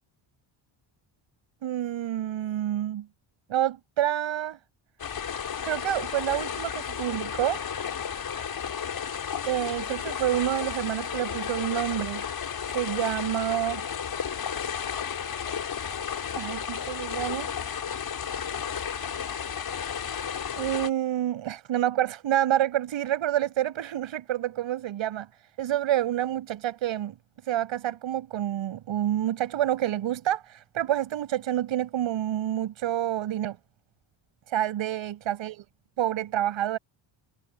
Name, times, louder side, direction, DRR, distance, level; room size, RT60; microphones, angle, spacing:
voice 1, 1.6-3.1 3.5-4.6 5.6-7.6 9.4-12.2 12.7-13.8 16.4-17.5 20.6-27.2 27.4-33.6 34.5-35.6 36.0-36.8, right 12 dB, 75° right, 7.1 m, -28 dB
sound 1, 5.0-20.9, left 7 dB, 50° left, 6.9 m, -33 dB
cardioid pair, 125°, 47 cm